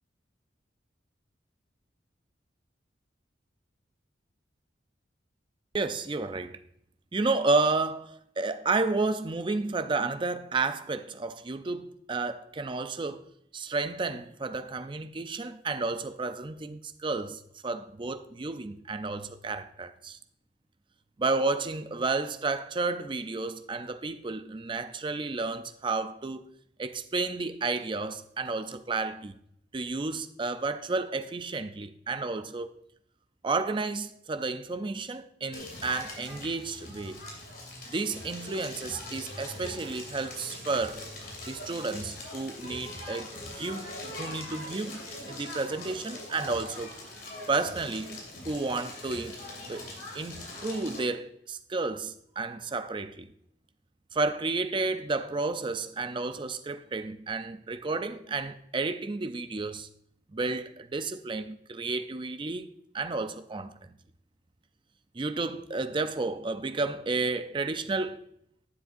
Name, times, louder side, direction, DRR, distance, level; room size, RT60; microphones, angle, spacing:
voice 1, 5.7-6.6 7.1-13.3 13.5-20.2 21.2-26.4 26.8-29.3 29.7-32.7 33.4-37.2 37.9-41.0 41.5-43.9 44.2-46.9 47.5-49.4 49.7-53.3 54.1-59.9 60.3-63.9 65.1-68.2, right 3 dB, 25° right, 0.5 m, -31 dB
Crackle, 35.5-51.0, left 2 dB, 55° left, 2.9 m, -42 dB
11.5 x 7.4 x 2.6 m
head